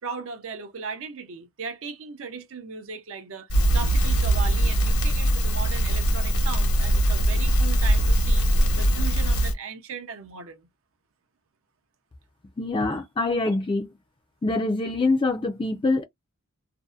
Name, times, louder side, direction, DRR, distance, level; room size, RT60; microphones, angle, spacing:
voice 1, 0.0-8.5 8.8-10.7, right 5 dB, 65° right, 0.5 m, -37 dB
Crackle, 3.5-9.5, right 1 dB, 80° left, 0.9 m, -21 dB
voice 2, 12.6-13.9 14.4-16.0, left 2 dB, 20° left, 0.3 m, -24 dB
2.6 x 2.0 x 2.3 m
head